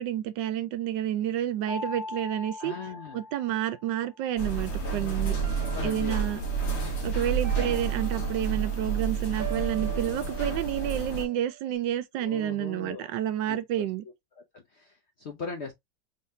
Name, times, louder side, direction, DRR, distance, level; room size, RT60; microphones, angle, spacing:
voice 1, 0.0-2.7 3.1-5.4 5.8-6.4 7.0-14.0, right 11 dB, 85° right, 1.3 m, -30 dB
sound 1, 1.7-4.0 5.4-6.4 7.4-8.7 9.4-11.8, right 2 dB, 65° right, 0.5 m, -41 dB
voice 2, 2.6-3.2 5.7-6.3 12.1-13.1 13.5-13.6 14.5-15.7, left 4 dB, 60° left, 0.7 m, -39 dB
sound 2, 4.4-11.2, right 5 dB, 40° left, 1.3 m, -30 dB
4.0 x 3.6 x 2.6 m
omnidirectional pair, 1.9 m